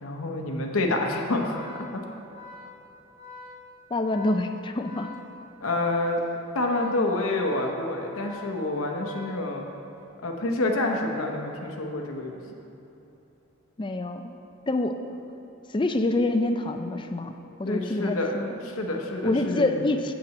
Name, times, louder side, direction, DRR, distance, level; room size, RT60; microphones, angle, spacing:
voice 1, 0.0-2.0 5.6-6.2 6.5-9.6 10.2-12.3 17.7-18.3 18.6-19.8, left 2 dB, 75° left, 1 dB, 0.9 m, -28 dB
Organ, 0.8-10.0, left 3 dB, 15° right, 1.4 m, -46 dB
voice 2, 3.9-5.1 13.8-14.3 14.7-15.0 15.7-18.5 19.2-20.1, left 2 dB, 20° left, 7 dB, 0.4 m, -26 dB
7.6 x 5.8 x 7.6 m, 2.9 s
head